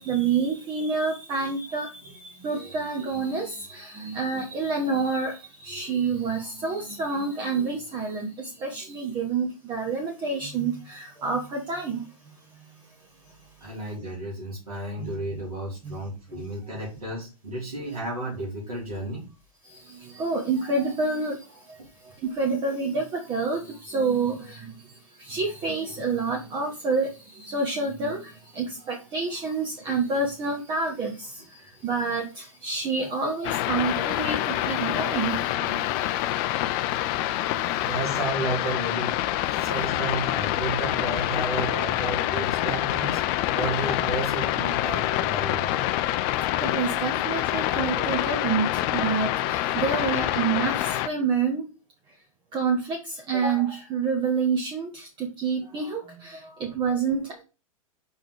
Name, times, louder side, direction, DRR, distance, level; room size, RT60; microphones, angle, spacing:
voice 1, 0.0-1.9 2.2-5.4 5.6-12.0 15.0-15.1 15.8-15.9 20.1-21.4 22.2-24.7 25.3-28.3 28.5-31.3 31.8-36.1 39.5-39.8 42.6-42.8 46.6-51.6 52.5-53.0 53.3-57.4, right 4 dB, 25° right, 1.3 m, -28 dB
voice 2, 13.6-19.3 24.4-24.5 33.0-33.1 34.8-34.9 37.9-39.2 39.6-43.2 43.5-45.7, right 1 dB, 85° right, 3.3 m, -32 dB
sound 1, 33.4-51.1, left 14 dB, 40° left, 0.5 m, -26 dB
5.6 x 3.8 x 4.8 m
figure-of-eight pair, 105°, 18 cm